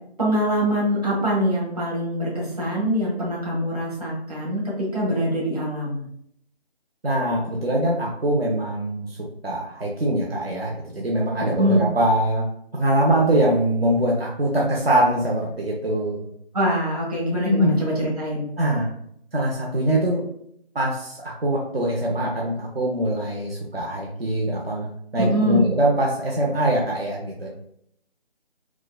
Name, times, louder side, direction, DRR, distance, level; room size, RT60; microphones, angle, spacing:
voice 1, 0.2-6.0 11.4-11.9 16.5-18.5 25.2-25.7, equal, 35° right, -5 dB, 1.2 m, -24 dB
voice 2, 7.0-9.1 9.4-12.4 12.7-16.2 17.4-17.7 18.6-18.9 19.3-20.3 20.7-24.9 25.1-27.5, right 1 dB, 65° right, -3 dB, 0.8 m, -23 dB
4.5 x 2.3 x 2.3 m, 0.70 s
figure-of-eight pair, 175°, 32 cm